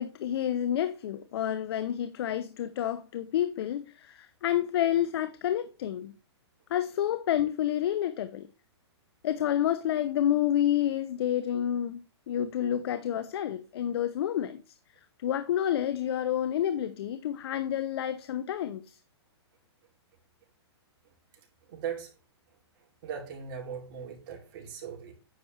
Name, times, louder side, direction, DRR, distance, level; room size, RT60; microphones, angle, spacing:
voice 1, 0.0-6.1 6.7-8.5 9.2-14.6 15.2-18.8, left 11 dB, 60° left, 0.7 m, -29 dB
voice 2, 21.7-22.1 23.0-25.1, right 7 dB, 45° right, 3.0 m, -38 dB
9.5 x 7.0 x 3.3 m
hypercardioid pair, 140°, 14 cm